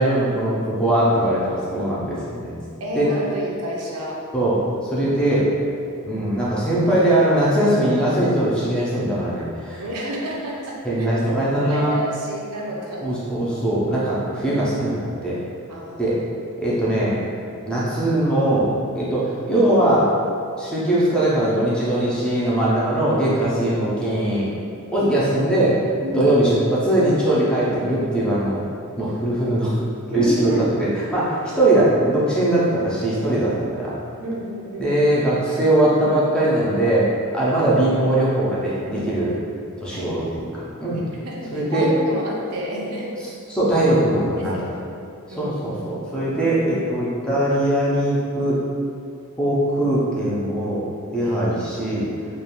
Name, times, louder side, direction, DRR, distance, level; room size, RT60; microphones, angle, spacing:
voice 1, 0.0-2.6 2.9-3.1 4.3-4.6 4.8-5.5 6.0-9.8 10.8-11.9 13.0-15.4 16.0-16.1 16.6-17.2 17.7-18.7 19.0-20.1 20.6-24.5 24.9-25.8 26.1-28.6 29.0-29.8 30.1-30.5 30.8-33.9 34.8-37.1 37.3-39.3 39.8-41.0 41.5-41.9 43.5-44.6 45.3-48.6 49.4-50.8 51.1-52.1, right 1 dB, 5° left, -8 dB, 0.4 m, -20 dB
voice 2, 2.8-4.2 4.9-5.1 9.8-11.1 11.6-13.1 14.4-14.6 15.7-16.2 26.0-26.3 30.1-30.7 34.2-34.9 39.9-40.1 41.2-43.1 44.4-44.9 45.3-46.1 51.2-51.6, right 1 dB, 80° right, -3 dB, 0.5 m, -30 dB
2.3 x 2.2 x 2.9 m, 2.4 s
head